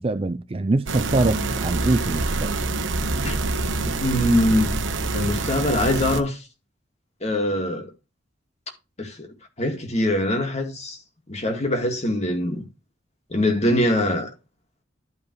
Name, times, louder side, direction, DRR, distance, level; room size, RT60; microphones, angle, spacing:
voice 1, 0.0-2.5, right 2 dB, 30° right, 0.5 m, -24 dB
sound 1, 0.9-6.2, right 3 dB, 80° right, 1.0 m, -26 dB
voice 2, 3.8-4.7 5.1-6.4 7.2-7.9 9.0-9.3 9.6-11.0 11.3-12.6 13.3-14.3, left 1 dB, 35° left, 2.1 m, -23 dB
12.5 x 5.4 x 3.1 m
head